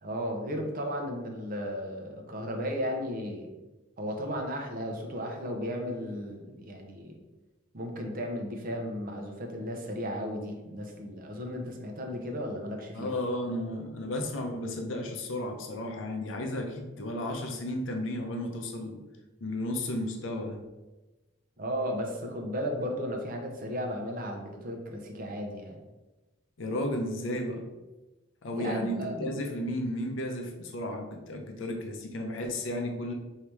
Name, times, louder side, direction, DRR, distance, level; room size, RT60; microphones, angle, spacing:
voice 1, 0.0-3.5 4.0-7.1 7.7-13.2 21.6-25.8 28.5-29.5, equal, 45° right, 2 dB, 0.7 m, -35 dB
voice 2, 12.9-19.0 19.4-20.6 26.6-27.6 28.4-33.1, left 1 dB, 75° left, 3 dB, 0.5 m, -33 dB
3.3 x 2.8 x 4.5 m, 1.1 s
head